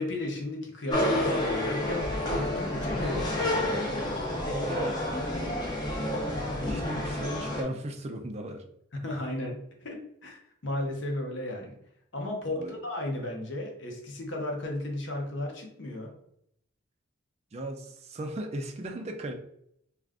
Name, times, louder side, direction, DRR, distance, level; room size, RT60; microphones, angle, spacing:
voice 1, 0.0-4.0 8.9-10.4 10.6-11.8 12.1-16.1, left 1 dB, 60° left, 2 dB, 0.7 m, -35 dB
sound 1, 0.9-7.6, left 1 dB, 20° left, 0.6 m, -29 dB
voice 2, 4.5-5.1 5.4-5.6 6.6-8.6 12.5-12.7 17.5-19.3, right 1 dB, 30° right, 5 dB, 0.3 m, -36 dB
2.4 x 2.4 x 3.4 m, 0.73 s
head